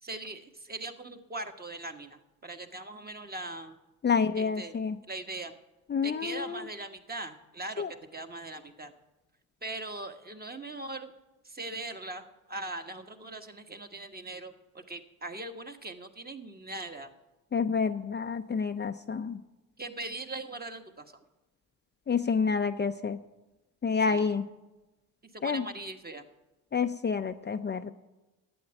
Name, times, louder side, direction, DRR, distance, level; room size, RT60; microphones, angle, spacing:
voice 1, 0.0-3.8 4.3-4.8 5.1-5.5 6.0-8.9 9.6-11.1 11.4-17.1 19.8-21.2 24.1-24.3 25.2-26.2, right 2 dB, 20° right, 6 dB, 1.4 m, -40 dB
voice 2, 4.0-5.0 5.9-6.6 7.8-7.9 17.5-19.4 22.1-23.2 23.8-24.4 25.4-25.6 26.7-27.9, left 5 dB, 25° left, 7 dB, 0.6 m, -28 dB
11.5 x 8.6 x 8.9 m, 1.1 s
hypercardioid pair, 55°, 42 cm